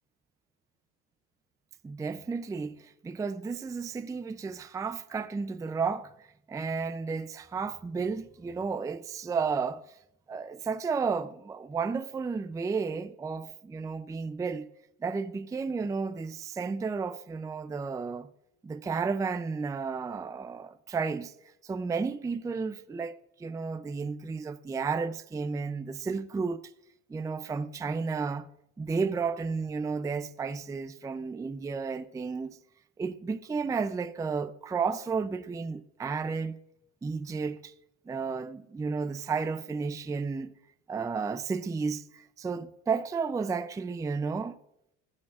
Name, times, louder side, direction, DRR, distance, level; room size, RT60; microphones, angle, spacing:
voice 1, 1.8-6.1 6.5-10.0 10.3-14.7 15.0-18.3 18.6-21.3 21.6-26.7 27.1-28.5 28.8-32.6 33.0-36.6 37.0-37.7 38.1-40.5 40.9-44.6, right 5 dB, 10° right, 0.4 m, -32 dB
18.5 x 6.4 x 2.4 m
supercardioid pair, 100°, 34 cm